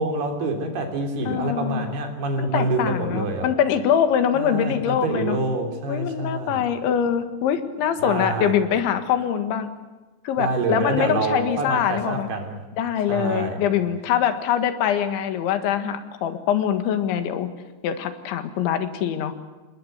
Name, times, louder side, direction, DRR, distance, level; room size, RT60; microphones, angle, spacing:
voice 1, 0.0-3.5 4.3-6.6 8.0-8.6 10.4-12.6 13.1-13.6, right 2 dB, 60° right, 4 dB, 5.2 m, -26 dB
voice 2, 1.3-1.9 2.4-5.4 5.9-9.7 10.2-12.3 12.8-17.5 17.8-19.3, left 9 dB, 80° left, 9 dB, 4.1 m, -23 dB
27.5 x 20.5 x 8.2 m, 1.2 s
omnidirectional pair, 5.2 m